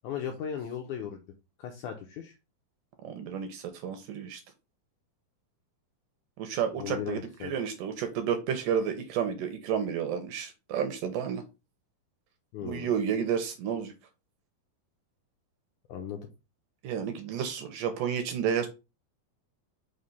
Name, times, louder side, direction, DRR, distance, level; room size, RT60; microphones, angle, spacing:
voice 1, 0.0-1.2 1.6-2.4 6.7-7.5 12.5-12.9 15.9-16.3, left 8 dB, 75° left, 4 dB, 1.9 m, -37 dB
voice 2, 3.0-4.4 6.4-11.4 12.6-13.9 16.8-18.7, right 8 dB, 75° right, 8 dB, 2.1 m, -31 dB
5.7 x 3.2 x 5.4 m, 0.28 s
omnidirectional pair, 4.3 m